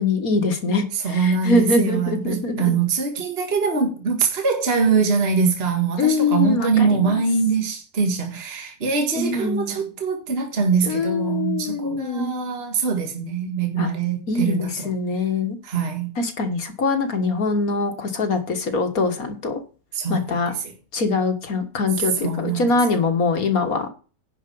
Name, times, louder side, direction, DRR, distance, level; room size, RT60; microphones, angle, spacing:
voice 1, 0.0-2.7 6.0-7.2 9.2-9.8 10.9-12.3 13.8-13.9 14.3-15.6 16.2-19.6 20.1-20.5 20.9-23.9, left 3 dB, 55° left, 2.0 m, -23 dB
voice 2, 0.9-14.9 15.6-16.2 19.9-20.3 20.6-20.7 22.2-22.7, right 5 dB, 35° right, 1.9 m, -23 dB
11.0 x 5.1 x 7.0 m
omnidirectional pair, 1.8 m